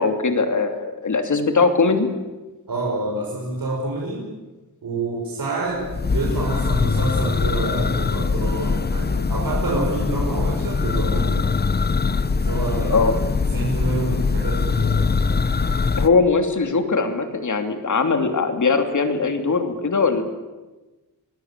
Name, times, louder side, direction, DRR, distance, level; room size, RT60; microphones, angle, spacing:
voice 1, 0.0-2.1 12.9-13.2 16.0-20.2, left 4 dB, 50° left, 7 dB, 2.9 m, -20 dB
voice 2, 2.7-4.2 4.8-11.4 12.4-13.0 13.5-15.1, right 2 dB, 65° right, -3 dB, 5.8 m, -27 dB
Church bell, 5.8-16.1, left 4 dB, 25° left, 0.8 m, -22 dB
26.5 x 20.0 x 9.1 m, 1.2 s
wide cardioid pair, 140°, 37 cm